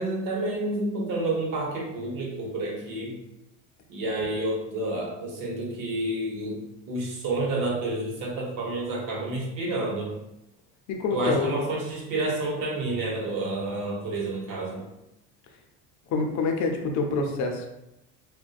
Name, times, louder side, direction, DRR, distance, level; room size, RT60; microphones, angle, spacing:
voice 1, 0.0-3.2 3.9-10.1 11.1-14.8, right 2 dB, 60° right, -2 dB, 1.0 m, -29 dB
voice 2, 10.9-11.5 16.1-17.7, left 4 dB, 50° left, 3 dB, 0.6 m, -26 dB
2.5 x 2.2 x 2.3 m, 0.88 s
supercardioid pair, 100°, 38 cm